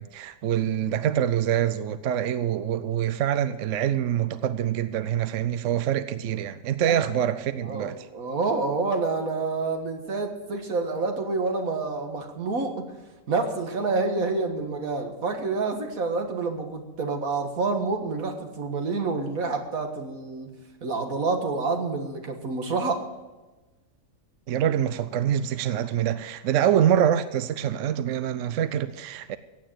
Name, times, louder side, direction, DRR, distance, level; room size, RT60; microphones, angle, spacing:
voice 1, 0.0-8.1 24.5-29.4, right 10 dB, 70° right, 0.9 m, -25 dB
voice 2, 7.6-12.9 13.3-20.5 20.8-23.0, right 3 dB, 85° right, 2.1 m, -28 dB
16.0 x 9.1 x 7.5 m
omnidirectional pair, 1.4 m